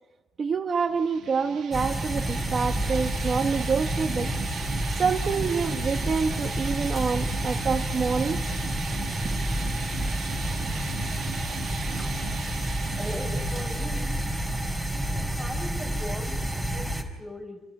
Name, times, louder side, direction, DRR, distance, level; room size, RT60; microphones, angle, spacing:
voice 1, 0.4-4.3 4.9-8.4, right 5 dB, 35° right, 5 dB, 1.2 m, -27 dB
sound 1, 0.8-16.2, right 9 dB, 60° right, 1.2 m, -40 dB
sound 2, 1.7-17.0, equal, 5° left, 4.0 m, -29 dB
voice 2, 13.4-14.2 14.9-17.6, left 1 dB, 20° left, 3 dB, 6.8 m, -40 dB
29.0 x 28.5 x 5.5 m, 1.2 s
cardioid pair, 150°, 0 cm